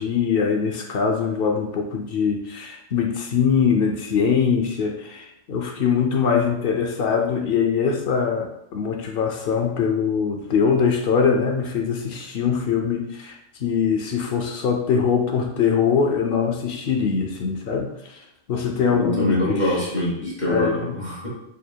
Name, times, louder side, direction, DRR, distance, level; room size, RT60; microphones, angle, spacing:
voice 1, 0.0-18.2 18.5-19.9 20.5-21.0, left 6 dB, 65° left, 3 dB, 0.6 m, -22 dB
voice 2, 18.9-21.3, left 1 dB, 35° left, -6 dB, 1.4 m, -24 dB
4.4 x 3.3 x 2.2 m, 0.78 s
omnidirectional pair, 1.4 m